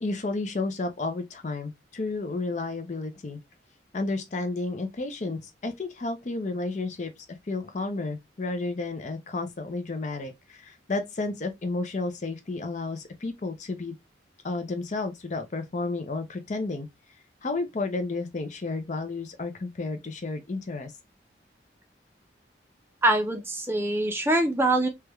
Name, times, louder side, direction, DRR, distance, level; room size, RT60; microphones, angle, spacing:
voice 1, 0.0-3.4 3.9-7.1 7.5-13.9 14.4-16.9 17.4-20.9, left 3 dB, 40° left, 0.5 m, -32 dB
voice 2, 23.0-24.9, right 2 dB, 10° right, 0.5 m, -24 dB
3.3 x 2.2 x 2.9 m
head